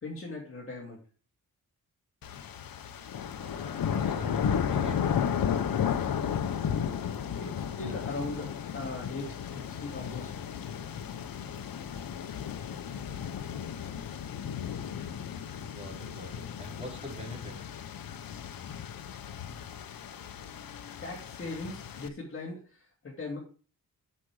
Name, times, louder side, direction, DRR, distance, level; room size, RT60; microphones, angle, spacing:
voice 1, 0.0-1.0 7.4-10.3 21.0-23.4, left 2 dB, 40° left, -3 dB, 2.5 m, -39 dB
sound 1, 2.2-22.1, left 8 dB, 85° left, 0.9 m, -34 dB
voice 2, 3.4-5.0 15.5-17.6, equal, 20° right, -2 dB, 4.7 m, -44 dB
8.4 x 7.5 x 4.9 m, 0.37 s
wide cardioid pair, 130°, 34 cm